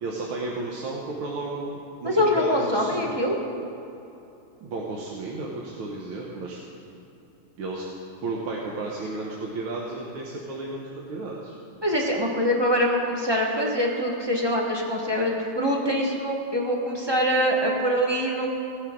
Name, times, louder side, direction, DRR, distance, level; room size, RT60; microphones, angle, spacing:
voice 1, 0.0-3.2 4.6-6.6 7.6-7.8 8.2-11.6, right 3 dB, 70° right, -3 dB, 1.9 m, -33 dB
voice 2, 2.0-3.4 11.8-18.5, equal, 15° right, -2 dB, 0.8 m, -24 dB
17.5 x 9.8 x 3.7 m, 2.8 s
omnidirectional pair, 2.4 m